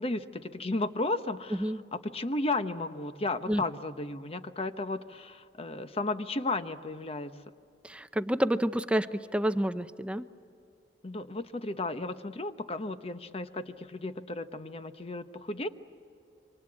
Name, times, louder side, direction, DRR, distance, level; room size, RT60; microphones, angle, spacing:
voice 1, 0.0-7.4 11.0-15.7, left 2 dB, 35° left, 10 dB, 1.0 m, -34 dB
voice 2, 7.8-10.3, equal, 5° right, 11 dB, 0.7 m, -29 dB
27.5 x 25.0 x 8.6 m, 2.6 s
head